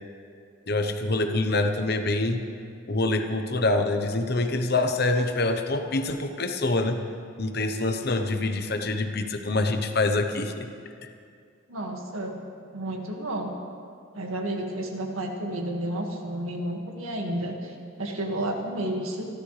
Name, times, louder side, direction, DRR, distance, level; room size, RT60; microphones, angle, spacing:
voice 1, 0.7-2.4 2.9-7.0 7.4-10.7, left 2 dB, 50° left, 6 dB, 1.0 m, -25 dB
voice 2, 11.7-12.4 12.7-13.5 14.1-19.3, right 1 dB, 90° right, 1 dB, 2.0 m, -31 dB
26.5 x 12.5 x 3.4 m, 2.3 s
head